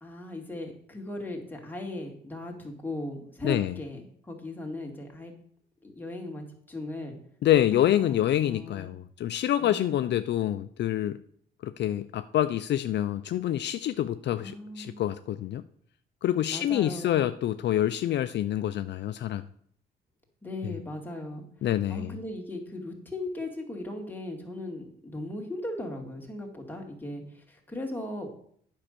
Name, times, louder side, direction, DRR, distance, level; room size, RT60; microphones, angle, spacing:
voice 1, 0.0-5.3 5.8-7.2 7.7-8.9 9.6-9.9 14.4-15.0 16.5-17.2 20.4-21.4 21.9-28.3, left 1 dB, 10° left, 1 dB, 2.4 m, -38 dB
voice 2, 3.4-3.7 7.4-11.2 11.6-15.6 16.2-19.4 20.6-20.7 21.6-22.1, left 12 dB, 60° left, 11 dB, 0.4 m, -27 dB
8.9 x 5.5 x 6.7 m, 0.63 s
cardioid pair, 90°, 20 cm